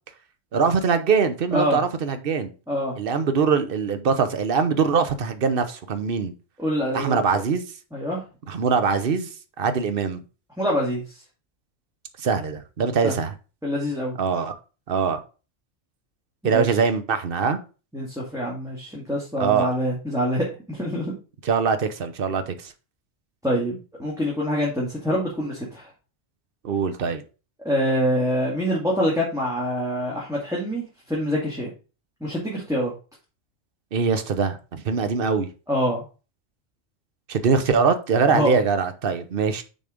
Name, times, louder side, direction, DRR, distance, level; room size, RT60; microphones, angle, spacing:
voice 1, 0.5-2.5 3.0-6.3 6.9-7.6 8.5-9.3 9.6-10.2 12.2-13.3 14.2-14.5 14.9-15.2 16.4-17.6 19.4-19.7 21.4-22.7 26.6-27.2 33.9-35.5 37.3-39.6, right 5 dB, 50° right, 1.0 m, -22 dB
voice 2, 6.6-7.2 7.9-8.2 10.6-11.0 13.0-13.2 13.6-14.2 16.4-16.7 17.9-21.1 23.4-25.9 27.6-31.7 32.2-32.9 35.7-36.0 38.3-38.6, equal, 5° right, 2.0 m, -25 dB
7.0 x 4.2 x 5.0 m
omnidirectional pair, 1.2 m